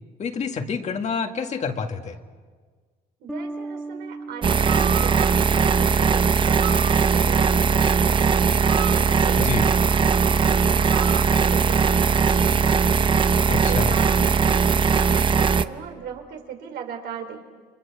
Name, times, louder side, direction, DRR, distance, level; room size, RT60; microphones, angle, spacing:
voice 1, 0.2-2.2 9.4-9.6 13.5-14.0, left 5 dB, 45° left, 5 dB, 1.9 m, -28 dB
voice 2, 3.2-6.6 7.1-9.7 10.1-12.9 13.5-17.4, right 7 dB, 75° right, 4 dB, 4.2 m, -38 dB
sound 1, 3.3-6.6, right 2 dB, ahead, 1.5 m, -38 dB
sound 2, 4.4-15.6, right 5 dB, 30° right, 0.8 m, -19 dB
sound 3, 4.7-5.3 6.6-11.2, right 9 dB, 55° right, 1.1 m, -37 dB
29.5 x 24.5 x 7.3 m, 1.5 s
cardioid pair, 110°, 17 cm